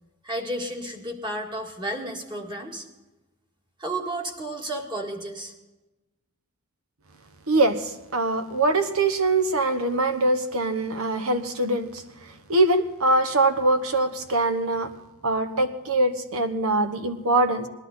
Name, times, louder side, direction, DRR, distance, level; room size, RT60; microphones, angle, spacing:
voice 1, 0.2-2.9 3.8-5.5, right 1 dB, 20° right, 2 dB, 1.9 m, -32 dB
voice 2, 7.5-14.9 15.2-17.7, right 2 dB, 75° right, 9 dB, 1.2 m, -23 dB
19.5 x 11.5 x 4.0 m, 1.1 s
head